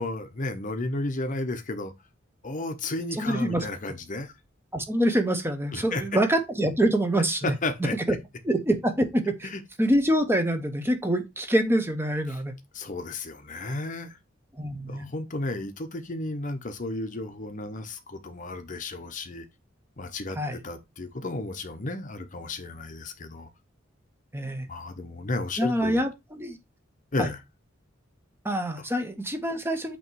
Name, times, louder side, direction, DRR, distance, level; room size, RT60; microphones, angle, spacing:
voice 1, 0.0-1.9 2.4-4.3 5.7-6.2 7.4-8.2 9.4-9.6 12.3-12.4 12.7-14.2 14.9-19.5 20.0-23.5 24.7-26.0 27.1-27.4, left 2 dB, 40° left, 0.9 m, -33 dB
voice 2, 3.1-3.7 4.7-7.5 7.9-8.2 8.4-9.5 9.8-12.5 14.6-15.1 20.4-20.6 24.3-24.7 25.6-26.6 27.2-27.3 28.4-30.0, right 1 dB, 10° right, 0.9 m, -25 dB
8.5 x 3.0 x 4.6 m
head